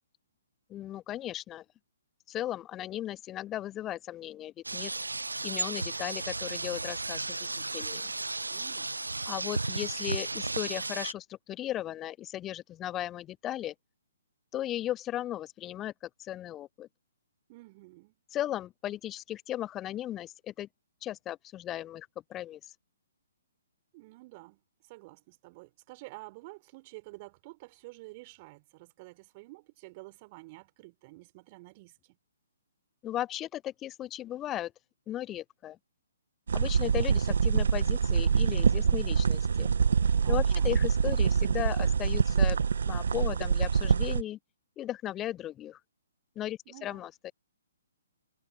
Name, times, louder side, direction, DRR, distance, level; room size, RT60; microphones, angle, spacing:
voice 1, 0.7-1.6 2.3-4.9 5.4-7.3 7.7-8.1 9.3-13.7 14.5-15.9 16.2-16.9 18.3-20.7 21.0-22.7 33.0-34.7 35.1-35.8 36.5-39.7 40.3-42.6 42.9-44.4 44.8-45.8 46.4-47.3, left 13 dB, 20° left, 0.4 m, -36 dB
sound 1, 4.6-11.1, right 3 dB, 85° right, 0.5 m, -34 dB
voice 2, 8.5-8.9 17.5-18.2 23.9-24.6 24.9-32.2 40.2-40.7 46.7-47.1, right 23 dB, 35° right, 3.9 m, -50 dB
sound 2, 36.5-44.2, right 6 dB, 65° right, 1.2 m, -25 dB
figure-of-eight pair, 130°, 0 cm